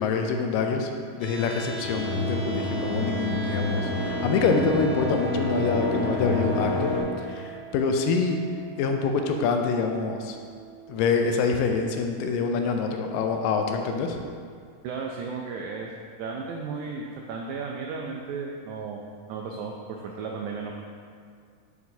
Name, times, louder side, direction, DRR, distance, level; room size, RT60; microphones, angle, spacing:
voice 1, 0.0-6.9 7.2-8.4 8.8-10.4 10.9-14.2, left 5 dB, 85° left, 4 dB, 2.2 m, -26 dB
sound 1, 1.2-13.2, right 6 dB, 45° right, 0.5 m, -39 dB
sound 2, 1.8-7.0, left 2 dB, 65° left, 1.7 m, -28 dB
voice 2, 14.8-15.9 16.2-20.7, right 5 dB, 90° right, 0 dB, 1.7 m, -34 dB
9.5 x 4.6 x 2.7 m, 2.1 s
omnidirectional pair, 3.9 m